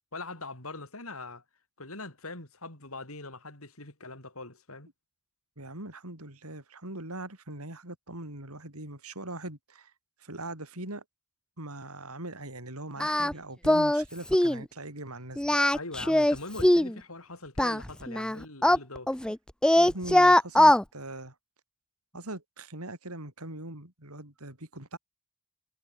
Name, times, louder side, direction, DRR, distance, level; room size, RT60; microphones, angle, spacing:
voice 1, 0.1-1.4 1.8-4.9 15.7-19.2, left 2 dB, 75° left, 7.3 m, -42 dB
voice 2, 5.6-9.9 10.2-11.0 11.6-15.4 19.8-21.3 22.1-25.0, right 2 dB, 90° right, 7.1 m, -41 dB
Singing, 13.0-13.3 13.6-14.0 14.3-14.6 15.4-16.9 17.6-19.4 19.6-20.8, left 1 dB, 5° left, 0.3 m, -21 dB
head